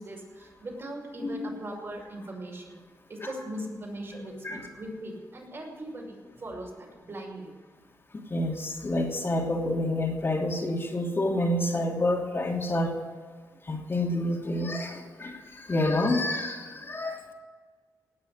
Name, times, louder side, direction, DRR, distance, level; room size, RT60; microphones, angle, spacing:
voice 1, 0.0-2.8 3.1-7.5, right 1 dB, 40° right, -1 dB, 5.7 m, -39 dB
voice 2, 1.2-1.5 3.2-3.3 4.1-4.7 8.3-12.9 13.7-17.2, left 1 dB, 40° left, 0 dB, 3.0 m, -28 dB
18.0 x 6.8 x 9.9 m, 1.5 s
cardioid pair, 70°, 6 cm